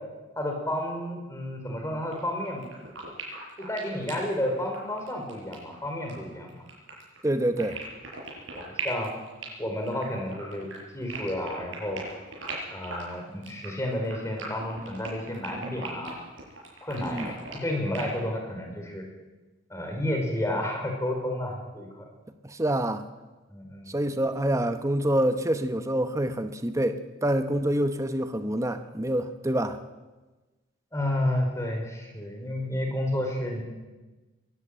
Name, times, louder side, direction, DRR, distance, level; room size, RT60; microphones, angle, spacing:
voice 1, 0.4-2.6 3.6-6.6 8.5-9.1 9.6-10.7 10.9-12.0 12.7-16.2 16.8-19.0 19.7-22.1 23.5-23.9 30.9-33.6, left 1 dB, 15° left, 2 dB, 4.9 m, -31 dB
sound 1, 2.1-2.2 2.4-18.1, right 3 dB, 90° right, 7.2 m, -39 dB
voice 2, 7.2-7.8 17.0-17.3 22.4-23.0 23.9-29.8, right 1 dB, 15° right, 8 dB, 1.0 m, -26 dB
22.5 x 14.0 x 8.9 m, 1.2 s
head